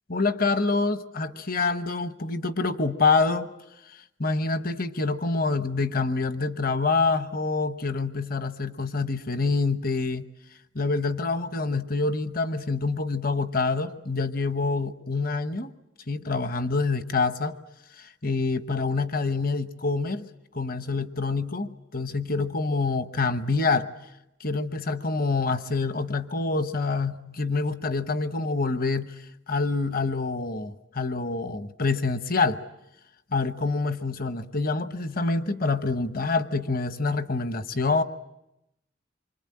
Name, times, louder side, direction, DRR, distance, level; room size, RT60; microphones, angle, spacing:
voice 1, 0.1-3.5 3.9-10.3 10.7-15.7 16.1-17.6 18.0-20.3 20.5-23.9 24.4-29.1 29.5-32.6 33.3-38.0, left 3 dB, 50° left, 10 dB, 1.1 m, -26 dB
27.0 x 24.5 x 8.6 m, 0.89 s
head